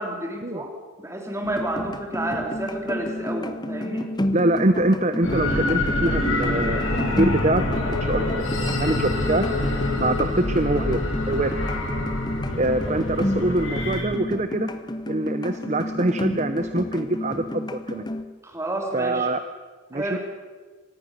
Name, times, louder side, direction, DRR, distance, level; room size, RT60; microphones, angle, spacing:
voice 1, 0.0-4.1 18.4-19.3 19.9-20.2, right 1 dB, 15° right, 2 dB, 3.3 m, -30 dB
sound 1, 1.4-18.2, left 1 dB, 20° left, 0.9 m, -31 dB
voice 2, 4.3-8.2 8.5-9.4 10.0-11.6 12.6-14.7 15.1-18.1 18.9-19.4 19.9-20.2, right 1 dB, 35° right, 10 dB, 0.8 m, -24 dB
sound 2, 5.2-14.0, left 2 dB, 75° left, 7.8 m, -26 dB
24.5 x 19.0 x 6.6 m, 1.4 s
head